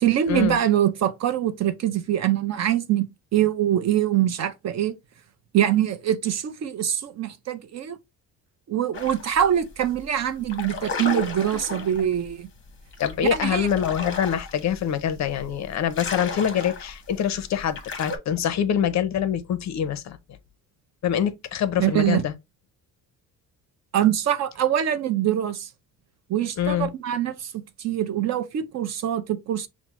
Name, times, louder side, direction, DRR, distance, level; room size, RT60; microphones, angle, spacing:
voice 1, 0.0-3.0 3.3-4.9 5.5-8.0 8.7-12.5 13.3-13.7 21.8-22.2 23.9-25.7 26.3-27.5 27.8-29.7, right 11 dB, 45° right, 0.4 m, -24 dB
sound 1, 8.9-9.4 9.8-10.0 10.4-18.2, left 4 dB, 30° left, 1.0 m, -34 dB
voice 2, 13.0-20.2 21.0-22.3 26.6-26.9, left 9 dB, 50° left, 0.5 m, -25 dB
5.8 x 2.1 x 2.9 m
cardioid pair, 150°, 37 cm